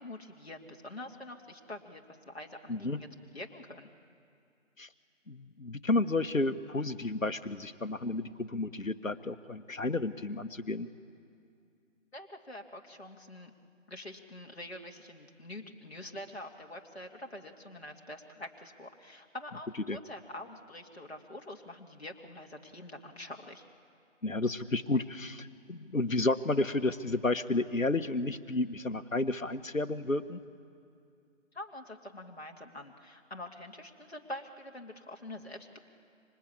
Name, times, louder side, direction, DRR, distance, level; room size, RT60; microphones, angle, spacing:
voice 1, 0.0-3.1 3.3-3.9 12.1-13.5 13.9-23.7 31.5-35.8, left 1 dB, 50° left, 1 dB, 2.4 m, -45 dB
voice 2, 5.3-10.9 19.9-20.0 24.2-30.4, left 2 dB, 85° left, 11 dB, 1.5 m, -31 dB
26.5 x 26.0 x 8.6 m, 2.4 s
figure-of-eight pair, 170°, 39 cm